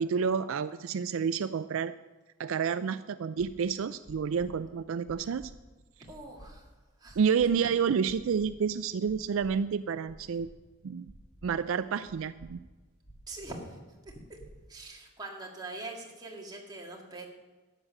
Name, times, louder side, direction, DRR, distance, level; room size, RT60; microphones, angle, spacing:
voice 1, 0.0-1.9 2.4-5.5 7.2-10.5 10.8-11.1 11.4-12.6, right 6 dB, 70° right, 13 dB, 0.4 m, -29 dB
sound 1, 3.4-3.5 4.0-4.5 5.0-5.5 6.0-6.5 7.0-7.5 8.0-8.5 9.0-9.5 10.0-10.5 11.0-11.5 12.0-12.5 13.0-13.5 14.0-14.5, right 1 dB, 25° left, 4.0 m, -52 dB
voice 2, 6.0-6.7 7.0-7.2 13.3-13.8 14.1-14.4 14.7-17.3, right 2 dB, 20° right, -1 dB, 2.2 m, -43 dB
13.0 x 8.8 x 6.4 m, 1.2 s
head